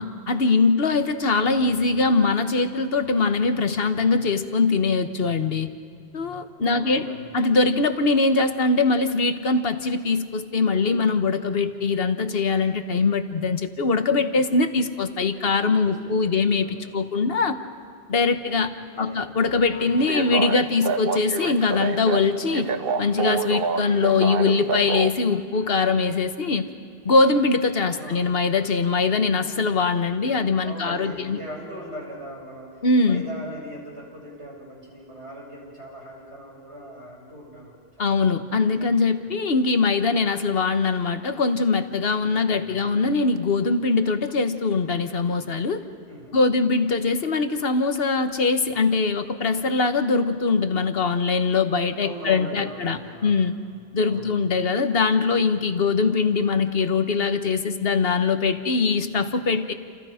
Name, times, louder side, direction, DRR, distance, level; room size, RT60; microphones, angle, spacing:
voice 1, 0.0-5.7 6.1-7.0 7.3-17.6 18.1-18.7 19.0-22.7 23.0-26.7 27.0-31.4 32.8-33.2 38.0-45.8 46.3-53.5 53.9-59.7, left 4 dB, 60° left, 8 dB, 1.4 m, -22 dB
voice 2, 6.6-7.3 15.8-16.9 19.0-19.2 19.6-20.0 27.8-28.2 30.6-39.0 42.1-42.8 46.1-46.4 52.0-53.5 54.0-54.4, equal, 80° right, -3 dB, 7.5 m, -40 dB
sound 1, 20.0-25.1, right 5 dB, 60° right, 1.0 m, -28 dB
29.5 x 28.5 x 5.1 m, 2.3 s
omnidirectional pair, 1.1 m